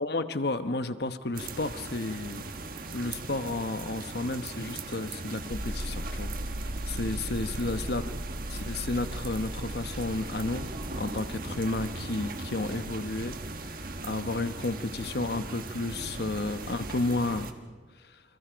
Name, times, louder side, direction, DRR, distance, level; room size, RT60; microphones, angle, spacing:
voice 1, 0.0-2.5 2.9-6.3 6.9-8.2 8.5-10.7 10.9-13.3 13.6-17.5 18.0-18.2, left 2 dB, 55° left, 10 dB, 1.0 m, -32 dB
sound 1, 1.3-17.5, right 3 dB, 50° right, 1.5 m, -39 dB
sound 2, 5.5-11.6, equal, ahead, 2.6 m, -38 dB
28.5 x 26.5 x 5.2 m, 1.5 s
head